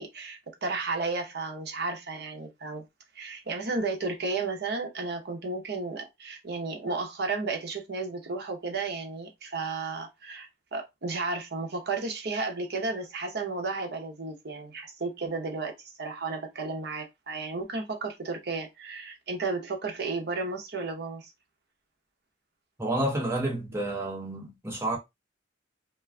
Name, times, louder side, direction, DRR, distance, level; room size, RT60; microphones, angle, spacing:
voice 1, 0.0-2.8 3.1-21.3, right 3 dB, 55° right, 0.7 m, -33 dB
voice 2, 22.8-25.0, right 1 dB, 15° right, 0.8 m, -30 dB
2.4 x 2.3 x 3.2 m
head